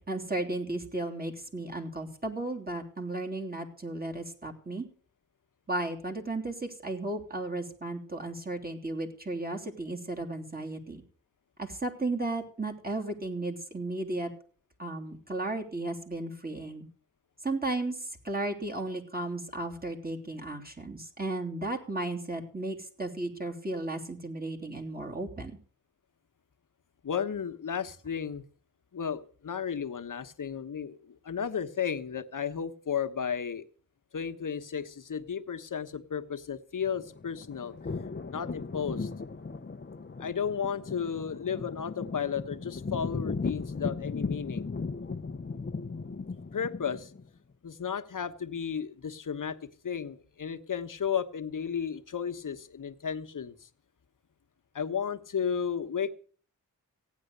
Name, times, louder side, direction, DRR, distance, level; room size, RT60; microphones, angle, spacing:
voice 1, 0.0-4.8 5.7-11.0 11.6-14.3 14.8-16.8 17.4-25.6, right 2 dB, 25° right, 2 dB, 3.1 m, -34 dB
voice 2, 27.0-28.4 28.9-33.6 34.1-37.7 38.3-39.1 40.2-44.7 46.5-47.1 47.6-53.7 54.7-56.1, left 7 dB, 65° left, 8 dB, 1.2 m, -33 dB
sound 1, 36.8-47.2, left 4 dB, 30° left, 0.8 m, -37 dB
15.5 x 9.5 x 6.7 m, 0.44 s
cardioid pair, 60°, 34 cm